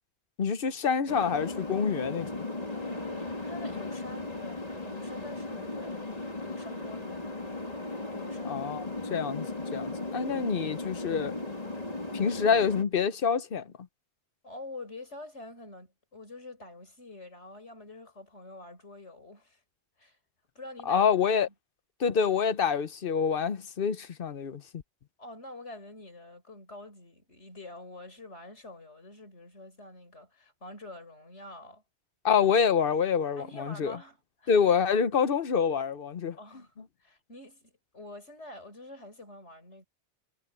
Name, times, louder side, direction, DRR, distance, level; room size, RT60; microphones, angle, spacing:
voice 1, 0.4-2.5 8.5-11.4 12.1-13.7 20.9-21.5 22.0-24.6 32.2-34.0 34.5-36.4, left 6 dB, 55° left, 1.1 m, -27 dB
sound 1, 1.1-12.8, left 2 dB, 35° left, 3.0 m, -36 dB
voice 2, 2.7-6.0 6.4-7.8 8.1-8.6 9.0-9.2 14.4-19.6 20.0-20.2 20.6-21.2 25.2-31.8 33.4-34.5 36.4-36.7 37.0-39.8, left 2 dB, 80° left, 5.6 m, -46 dB
omnidirectional pair, 1.2 m